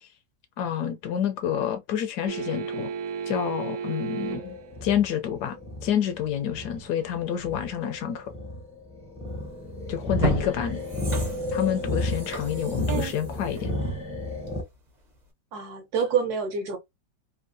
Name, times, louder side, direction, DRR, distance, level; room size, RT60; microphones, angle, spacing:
voice 1, 0.6-2.9 3.3-5.6 5.8-8.3 9.9-10.8 11.5-13.7, left 9 dB, 75° left, 1.1 m, -28 dB
sound 1, 2.3-4.6 7.2-7.3, right 7 dB, 90° right, 1.3 m, -33 dB
sound 2, 4.2-14.6, left 1 dB, 10° right, 0.3 m, -32 dB
sound 3, 9.4-9.6 10.0-14.7 15.1-15.2, equal, 35° right, 0.8 m, -34 dB
voice 2, 15.5-16.8, right 6 dB, 65° right, 1.3 m, -27 dB
3.5 x 2.4 x 2.6 m
omnidirectional pair, 1.9 m